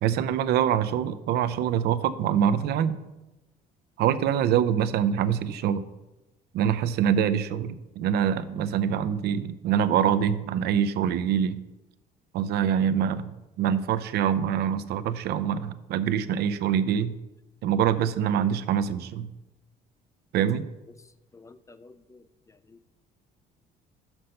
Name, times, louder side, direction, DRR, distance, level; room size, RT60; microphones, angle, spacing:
voice 1, 0.0-3.0 4.0-5.8 6.5-11.6 12.3-17.2 17.6-19.3 20.3-20.7, right 9 dB, 75° right, 12 dB, 0.5 m, -25 dB
voice 2, 21.3-22.2 22.7-22.9, left 3 dB, 20° left, 13 dB, 0.4 m, -51 dB
6.0 x 5.5 x 6.4 m, 1.0 s
cardioid pair, 110°, 17 cm